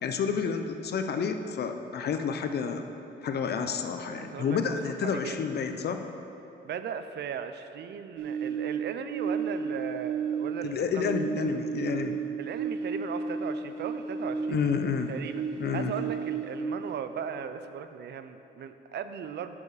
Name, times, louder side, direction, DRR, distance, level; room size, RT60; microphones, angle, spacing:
voice 1, 0.0-2.9 3.2-6.0 10.6-12.2 14.5-15.1 15.6-15.9, left 6 dB, 55° left, 7 dB, 0.6 m, -30 dB
voice 2, 4.1-4.6 5.0-5.5 6.6-11.1 12.4-14.6 15.1-15.4 15.7-19.6, right 7 dB, 60° right, 10 dB, 0.5 m, -37 dB
sound 1, 8.2-10.7 11.0-14.9 15.2-16.9, right 6 dB, 85° right, 0.8 m, -33 dB
7.2 x 7.0 x 4.8 m, 2.9 s
cardioid pair, 90°, 20 cm